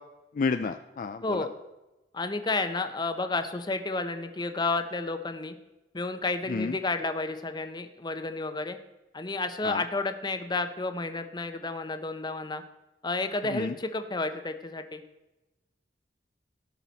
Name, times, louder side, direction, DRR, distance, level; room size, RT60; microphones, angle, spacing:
voice 1, 0.4-1.5 6.5-6.7 9.6-9.8 13.5-13.7, left 4 dB, 50° left, 8 dB, 0.4 m, -30 dB
voice 2, 2.1-5.5 5.9-8.8 9.1-12.6 13.0-15.0, left 3 dB, 25° left, 8 dB, 0.8 m, -31 dB
17.5 x 5.9 x 4.1 m, 1.0 s
head